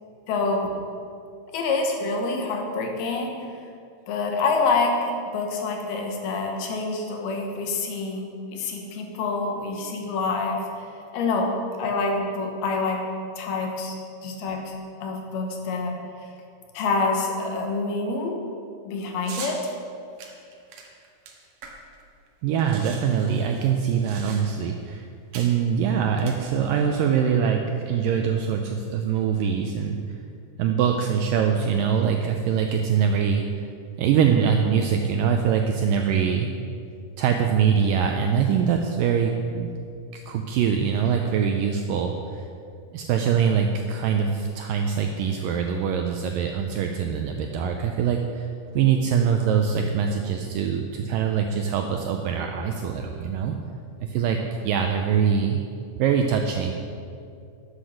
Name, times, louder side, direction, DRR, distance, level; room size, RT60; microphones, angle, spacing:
voice 1, 0.3-0.7 1.5-3.3 4.1-10.9 11.1-13.0 13.4-13.9 14.2-14.7 15.0-16.0 16.7-18.4 18.9-19.7, left 3 dB, 75° left, 2 dB, 3.1 m, -26 dB
sound 1, 19.2-19.6 20.2-22.0 22.3-22.4 22.6-24.7 25.3-25.6 26.1-26.9, right 5 dB, 60° right, 2.1 m, -41 dB
voice 2, 22.4-25.0 25.3-30.0 30.6-33.4 34.0-36.5 37.2-39.7 40.1-42.4 42.9-48.5 48.8-53.6 54.0-55.6 56.0-56.7, right 7 dB, 80° right, 4 dB, 2.0 m, -23 dB
11.5 x 8.2 x 6.4 m, 2.4 s
omnidirectional pair, 4.6 m